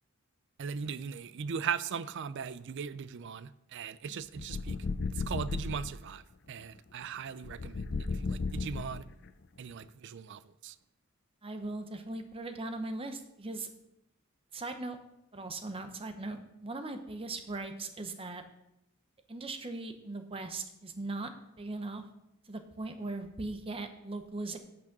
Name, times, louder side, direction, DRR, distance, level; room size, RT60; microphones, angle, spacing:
voice 1, 0.6-4.8 5.1-6.2 6.5-7.8 8.1-9.1 9.6-10.8, right 6 dB, 55° right, 0.4 m, -38 dB
sound 1, 4.3-5.9 7.4-9.3, left 4 dB, 50° left, 0.5 m, -35 dB
voice 2, 11.4-13.7 14.5-15.0 15.3-18.4 19.3-21.3 21.6-22.0 22.5-24.6, right 2 dB, 25° right, 0.8 m, -39 dB
8.8 x 6.1 x 6.0 m
head